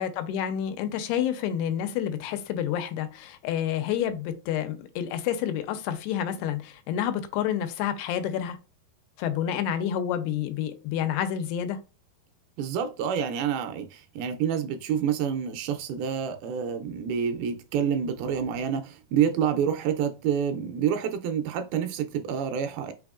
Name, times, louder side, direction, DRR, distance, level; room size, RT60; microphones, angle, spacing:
voice 1, 0.0-8.6 9.2-11.8, left 9 dB, 85° left, 2.6 m, -29 dB
voice 2, 12.6-22.9, right 8 dB, 80° right, 2.3 m, -28 dB
5.8 x 3.5 x 2.3 m
omnidirectional pair, 4.6 m